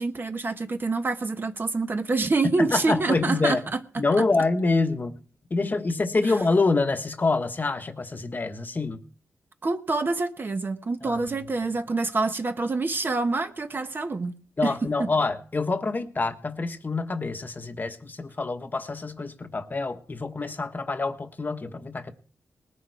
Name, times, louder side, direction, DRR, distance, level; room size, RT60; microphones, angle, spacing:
voice 1, 0.0-4.2 9.6-14.7 15.0-15.1, right 3 dB, 35° right, 1.2 m, -27 dB
voice 2, 2.6-3.6 4.0-5.2 5.5-9.0 11.0-11.2 14.6-22.1, left 3 dB, 30° left, 1.2 m, -26 dB
19.5 x 10.5 x 4.7 m
wide cardioid pair, 105°, 6 cm